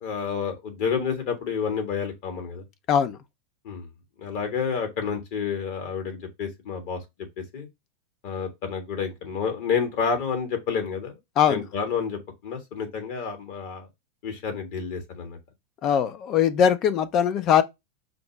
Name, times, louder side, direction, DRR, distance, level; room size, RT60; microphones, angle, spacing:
voice 1, 0.0-2.6 3.6-3.9 4.2-7.0 7.5-7.7 8.2-11.2 11.5-13.9 14.2-15.4, left 6 dB, 60° left, 1.7 m, -29 dB
voice 2, 2.9-3.2 11.4-11.6 15.8-17.6, left 8 dB, 40° left, 0.6 m, -21 dB
5.1 x 2.1 x 4.6 m
hypercardioid pair, 100°, 0 cm